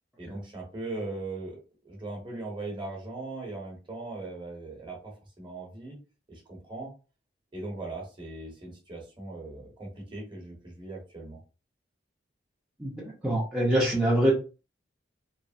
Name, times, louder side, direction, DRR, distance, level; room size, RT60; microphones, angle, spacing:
voice 1, 0.2-1.6 1.8-6.0 6.3-6.9 7.5-11.4, right 2 dB, 25° right, -1 dB, 1.0 m, -39 dB
voice 2, 12.8-14.3, right 1 dB, 5° right, -6 dB, 0.7 m, -25 dB
3.1 x 2.0 x 2.5 m, 0.33 s
head